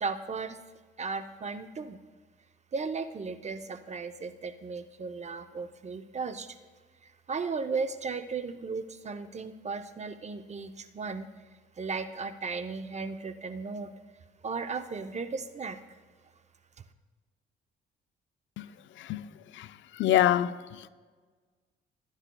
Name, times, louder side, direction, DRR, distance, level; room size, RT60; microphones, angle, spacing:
voice 1, 0.0-0.6 1.0-2.0 2.7-6.5 7.0-11.3 11.8-13.9 14.4-15.8, right 4 dB, 35° right, 0.7 m, -35 dB
voice 2, 20.0-20.9, left 12 dB, 70° left, 0.5 m, -26 dB
19.5 x 9.8 x 2.3 m
cardioid pair, 90°, 20 cm